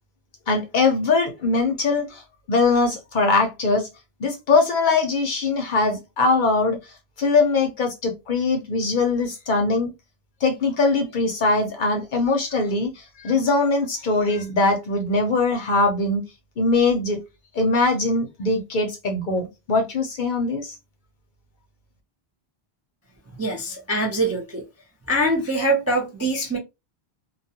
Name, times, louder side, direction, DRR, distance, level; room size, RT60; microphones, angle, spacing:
voice 1, 0.5-2.2 2.5-3.9 4.2-6.8 7.2-9.9 10.4-16.2 16.6-17.2 17.5-20.7, left 3 dB, 55° left, 0.6 m, -21 dB
voice 2, 23.4-24.6 25.1-26.6, right 1 dB, 25° right, 0.3 m, -23 dB
2.2 x 2.2 x 2.7 m
omnidirectional pair, 1.1 m